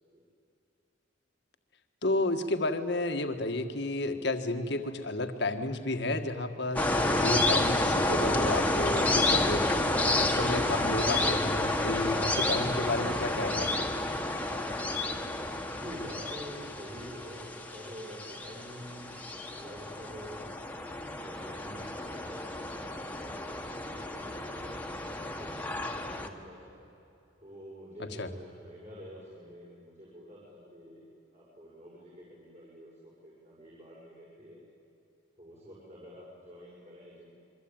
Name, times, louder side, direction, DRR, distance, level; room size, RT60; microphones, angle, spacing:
voice 1, 2.0-9.8 10.1-13.9 28.0-28.3, left 2 dB, 65° left, 6 dB, 1.8 m, -32 dB
sound 1, 6.8-26.3, left 2 dB, 10° left, 1.9 m, -30 dB
voice 2, 15.7-20.7 21.1-26.9 27.4-31.0 31.3-34.6 35.4-37.3, equal, 40° right, -6 dB, 6.9 m, -48 dB
28.5 x 23.5 x 9.0 m, 2.8 s
head